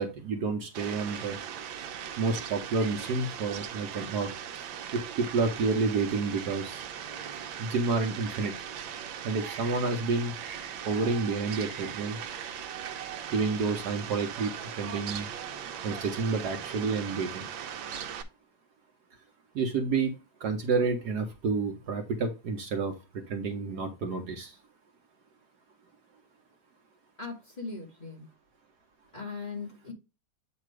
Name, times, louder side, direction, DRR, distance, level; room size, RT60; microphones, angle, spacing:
voice 1, 0.0-1.4 2.2-4.3 4.9-6.8 7.2-7.3 7.6-8.5 9.2-10.3 10.8-12.2 13.3-15.3 15.8-17.4 19.5-20.1 20.4-22.9 23.3-24.5, right 4 dB, 60° right, 5 dB, 1.4 m, -29 dB
Fowl, 0.7-18.2, right 8 dB, 80° right, 1.5 m, -39 dB
voice 2, 27.2-28.3 29.1-29.9, left 4 dB, 25° left, -1 dB, 1.7 m, -39 dB
8.4 x 3.0 x 4.7 m, 0.28 s
omnidirectional pair, 2.1 m